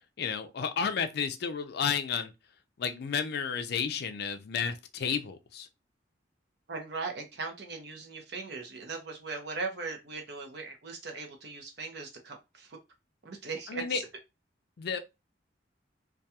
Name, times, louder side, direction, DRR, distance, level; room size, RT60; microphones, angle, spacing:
voice 1, 0.2-2.3 2.8-5.7 13.7-14.0 14.8-15.0, left 6 dB, 60° left, 0.4 m, -32 dB
voice 2, 6.7-12.8 13.2-14.1, right 4 dB, 65° right, 0.7 m, -39 dB
2.3 x 2.2 x 2.7 m
head